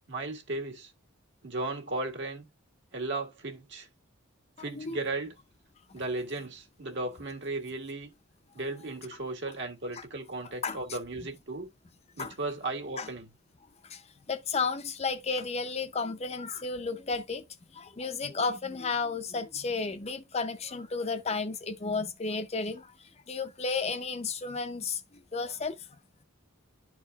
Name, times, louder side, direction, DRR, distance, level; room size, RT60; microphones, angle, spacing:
voice 1, 0.1-0.9 1.4-2.5 2.9-3.9 4.6-5.3 5.9-8.1 8.5-11.7 12.2-13.3, right 2 dB, 55° right, 1.7 m, -35 dB
voice 2, 13.8-17.5 17.7-25.0 25.3-25.9, left 4 dB, 30° left, 0.5 m, -33 dB
11.5 x 4.5 x 2.3 m
head